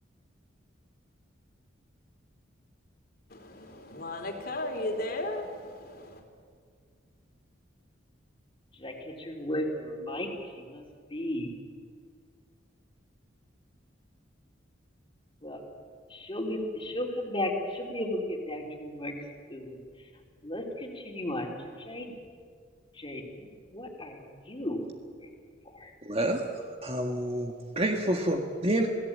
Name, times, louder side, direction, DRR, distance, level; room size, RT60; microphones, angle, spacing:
voice 1, 3.3-6.2, left 1 dB, 50° left, 4 dB, 3.4 m, -35 dB
voice 2, 8.7-10.8 11.1-11.5 15.4-15.6 16.1-19.1 19.5-19.8 20.4-21.5 21.9-22.2 22.9-24.8 25.2-25.3 25.7-25.9, left 1 dB, 25° left, -1 dB, 3.4 m, -35 dB
voice 3, 26.0-26.4 26.8-28.9, right 1 dB, 30° right, 2 dB, 1.8 m, -28 dB
27.5 x 18.0 x 8.6 m, 2.1 s
head